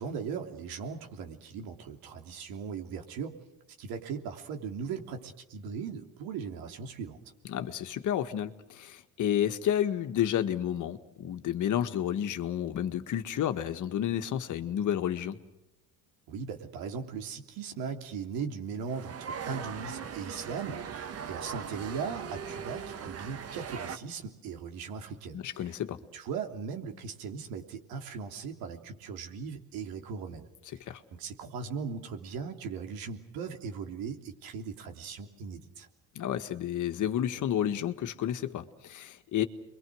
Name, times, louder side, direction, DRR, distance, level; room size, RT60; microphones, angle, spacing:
voice 1, 0.0-3.4 3.8-7.2 16.3-25.8 26.1-30.5 31.1-35.9, right 6 dB, 80° right, 4 dB, 3.3 m, -38 dB
voice 2, 7.5-15.4 25.3-26.0 30.9-31.0 36.2-39.4, left 10 dB, 60° left, 9 dB, 1.7 m, -31 dB
sound 1, 18.9-24.0, right 7 dB, 45° right, 1.5 m, -39 dB
28.5 x 23.5 x 6.4 m, 0.91 s
cardioid pair, 105°, 35 cm